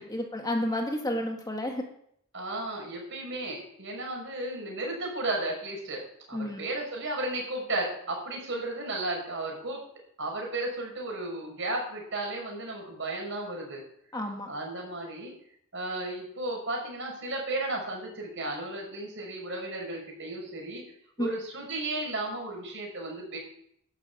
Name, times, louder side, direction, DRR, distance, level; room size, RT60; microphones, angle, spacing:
voice 1, 0.0-1.8 6.3-6.7 14.1-14.5 21.2-21.3, left 1 dB, 20° left, 2 dB, 1.6 m, -31 dB
voice 2, 2.3-9.8 10.2-13.8 14.5-15.3 15.7-20.8 21.2-23.4, right 2 dB, 60° right, 0 dB, 5.9 m, -34 dB
12.0 x 7.1 x 8.1 m, 0.68 s
head